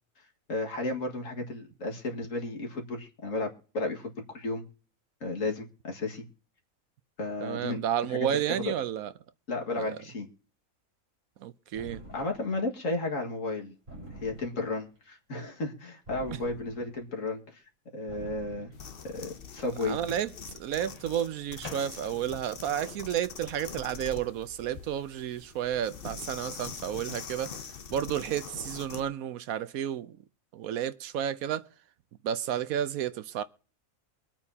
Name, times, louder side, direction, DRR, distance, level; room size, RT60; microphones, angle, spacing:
voice 1, 0.5-4.6 5.2-6.2 7.2-7.8 8.1-8.7 9.5-10.3 12.1-13.7 14.2-17.6 17.9-18.7 19.1-20.0, left 2 dB, 70° left, 2.3 m, -33 dB
voice 2, 7.4-9.1 9.7-9.9 11.4-12.0 19.8-20.3 20.6-27.5 27.9-30.1 30.5-31.6 32.2-33.4, right 10 dB, 85° right, 1.2 m, -31 dB
sound 1, 11.7-12.6 13.9-14.8 16.1-17.1 18.1-18.9, right 1 dB, 45° right, 4.7 m, -46 dB
Microwave oven, 12.1-12.8 14.8-15.0 20.8-22.4, left 2 dB, 25° left, 2.3 m, -49 dB
sound 2, 18.7-29.1, left 6 dB, 45° left, 1.0 m, -44 dB
24.0 x 8.7 x 2.8 m
omnidirectional pair, 1.4 m